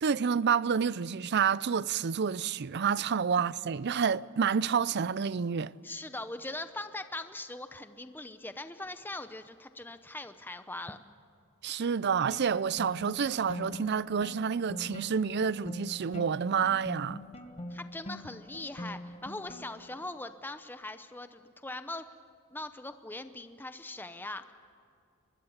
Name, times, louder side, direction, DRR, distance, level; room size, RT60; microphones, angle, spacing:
voice 1, 0.0-5.7 11.6-17.2, right 6 dB, 50° right, 0.5 m, -29 dB
voice 2, 5.8-11.0 17.7-22.0 22.5-24.5, left 2 dB, 10° left, 0.7 m, -41 dB
sound 1, 12.3-19.9, left 1 dB, 30° left, 1.5 m, -43 dB
23.5 x 21.0 x 7.2 m
head